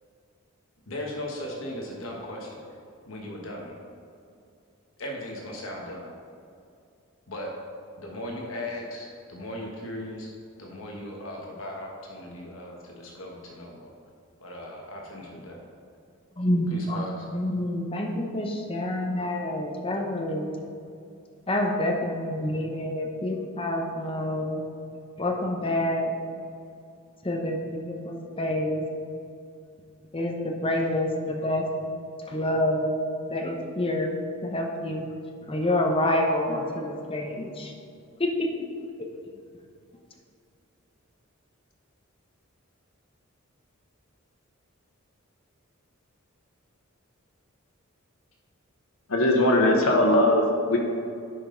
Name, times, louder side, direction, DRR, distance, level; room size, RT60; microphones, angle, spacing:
voice 1, 0.9-2.6 3.0-3.7 5.0-6.1 7.3-7.5 8.0-10.3 10.6-13.9 14.4-15.6 16.7-17.3, left 1 dB, 70° left, -1 dB, 1.2 m, -37 dB
voice 2, 16.4-17.0 17.3-20.5 21.5-24.6 25.2-26.1 27.2-28.8 30.1-31.6 32.3-32.9 33.3-35.0 35.5-37.7 38.2-38.5, left 1 dB, 25° left, 2 dB, 0.8 m, -27 dB
voice 3, 49.1-50.8, left 1 dB, 85° left, 1 dB, 1.3 m, -20 dB
10.5 x 5.1 x 3.9 m, 2.4 s
head